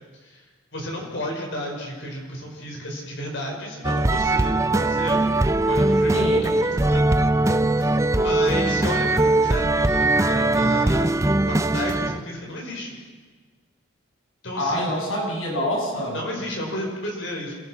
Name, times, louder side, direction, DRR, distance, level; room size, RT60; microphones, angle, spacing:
voice 1, 0.7-5.2 5.7-7.1 7.8-7.9 8.2-11.2 11.5-13.0 14.4-14.9 16.1-17.6, left 1 dB, 60° left, 0 dB, 5.3 m, -32 dB
sound 1, 3.8-12.2, right 2 dB, 15° right, 0.5 m, -20 dB
voice 2, 6.1-6.5 14.6-16.2, equal, 85° left, -2 dB, 7.3 m, -26 dB
27.0 x 17.0 x 6.0 m, 1.5 s
head